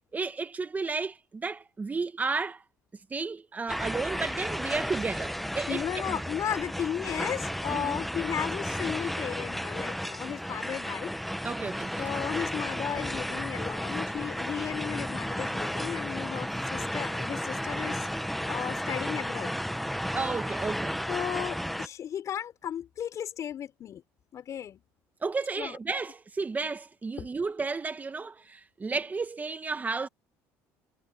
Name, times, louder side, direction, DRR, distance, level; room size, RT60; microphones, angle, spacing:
voice 1, 0.1-2.6 3.1-5.8 6.1-6.2 7.7-8.0 11.4-11.9 20.1-21.0 25.2-30.1, right 4 dB, 25° right, 1.5 m, -32 dB
sound 1, 3.7-21.9, equal, ahead, 1.1 m, -33 dB
voice 2, 5.7-11.1 12.0-18.1 18.4-19.5 21.1-24.0 24.3-24.8 25.6-25.8 27.2-27.3, left 9 dB, 50° left, 5.6 m, -35 dB
supercardioid pair, 85°, 7 cm